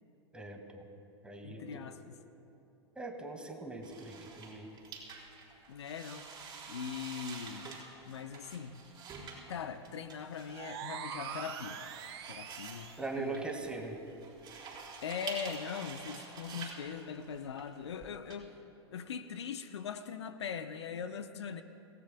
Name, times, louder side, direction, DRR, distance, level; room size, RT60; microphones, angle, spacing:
voice 1, 0.3-0.8 1.2-1.9 3.0-4.7 13.0-14.0, right 3 dB, 5° right, 3 dB, 2.0 m, -41 dB
voice 2, 1.4-2.2 5.7-6.3 6.7-7.7 8.0-8.8 9.5-11.8 12.3-13.4 15.0-18.5 18.9-21.6, left 7 dB, 75° left, 9 dB, 0.8 m, -41 dB
sound 1, 3.8-18.4, right 4 dB, 30° right, 4.4 m, -48 dB
sound 2, 10.5-13.2, right 8 dB, 65° right, 1.3 m, -44 dB
26.5 x 17.5 x 2.3 m, 2.8 s
hypercardioid pair, 100°, 14 cm